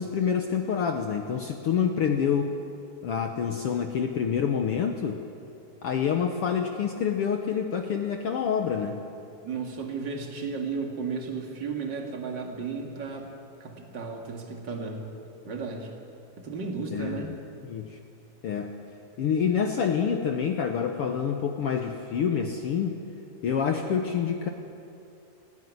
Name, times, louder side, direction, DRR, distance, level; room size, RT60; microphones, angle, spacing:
voice 1, 0.0-2.5 3.0-5.2 5.8-9.0 16.9-17.3 17.7-18.0 18.4-18.7 19.2-23.0 23.4-24.5, left 7 dB, 65° left, 4 dB, 1.4 m, -27 dB
voice 2, 9.4-13.3 13.6-15.0 15.4-15.9 16.4-17.4, right 4 dB, 35° right, 2 dB, 2.5 m, -34 dB
19.0 x 16.5 x 9.6 m, 2.6 s
omnidirectional pair, 3.7 m